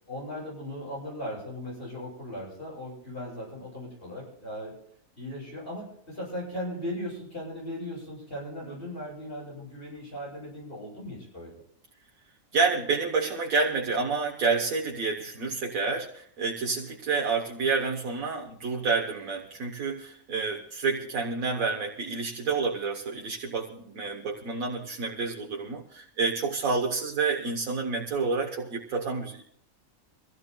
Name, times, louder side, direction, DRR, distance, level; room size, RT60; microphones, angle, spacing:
voice 1, 0.1-4.7 5.2-11.5, left 1 dB, 40° left, -4 dB, 8.2 m, -38 dB
voice 2, 12.5-29.4, right 4 dB, 70° right, 2 dB, 1.5 m, -29 dB
24.5 x 16.5 x 2.3 m, 0.66 s
omnidirectional pair, 1.5 m